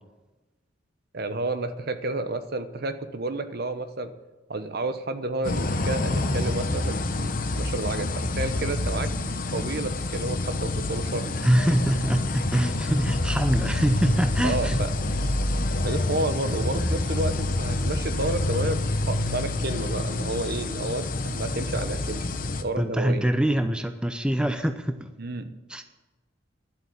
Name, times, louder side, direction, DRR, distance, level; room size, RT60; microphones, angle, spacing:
voice 1, 1.1-4.1 4.5-9.1 9.5-11.3 14.4-14.9 15.8-22.3 22.6-23.3 25.2-25.4, right 2 dB, 55° right, 10 dB, 1.0 m, -30 dB
sound 1, 5.4-22.6, left 2 dB, 45° left, 1.0 m, -27 dB
voice 2, 11.4-14.8 22.8-25.1 25.7-25.8, right 1 dB, 5° right, 7 dB, 0.6 m, -24 dB
11.5 x 7.9 x 9.8 m, 1.2 s
head